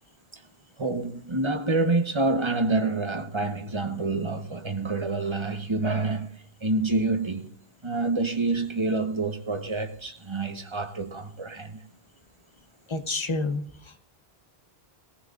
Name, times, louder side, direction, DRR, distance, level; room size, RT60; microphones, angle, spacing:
voice 1, 0.8-7.5 7.8-11.8, right 3 dB, 30° right, 1.1 m, -27 dB
voice 2, 12.9-14.0, left 3 dB, 30° left, 1.0 m, -29 dB
21.5 x 15.0 x 2.5 m
omnidirectional pair, 1.0 m